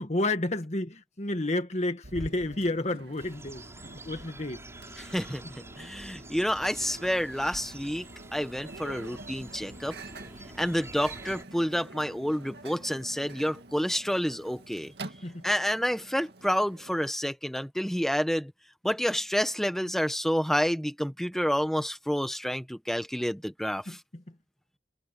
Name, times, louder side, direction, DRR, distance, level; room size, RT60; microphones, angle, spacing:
voice 1, 0.0-3.6 3.9-4.6 15.2-15.4 23.9-24.2, left 2 dB, 40° left, 1.4 m, -31 dB
Microwave oven, 2.0-17.1, right 2 dB, 65° right, 2.5 m, -47 dB
sound 1, 3.2-11.4, right 2 dB, 15° right, 7.0 m, -47 dB
voice 2, 5.0-5.4 5.8-8.0 8.3-10.0 10.6-14.9 15.4-18.5 18.8-24.0, equal, ahead, 1.3 m, -29 dB
head